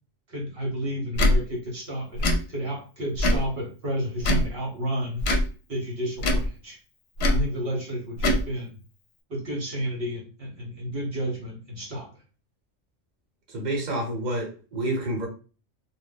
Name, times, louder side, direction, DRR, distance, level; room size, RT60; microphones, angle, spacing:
voice 1, 0.3-5.3 5.7-6.8 7.3-8.7 9.3-12.1, equal, 55° right, -1 dB, 1.0 m, -31 dB
Tick / Tick-tock, 1.1-1.4 2.2-2.4 3.2-3.5 4.2-4.5 5.2-5.5 6.2-6.5 7.2-7.4 8.2-8.4, left 1 dB, 60° left, 0.8 m, -22 dB
voice 2, 13.5-15.3, right 1 dB, 40° right, 0 dB, 0.9 m, -28 dB
2.4 x 2.3 x 3.5 m, 0.35 s
omnidirectional pair, 1.2 m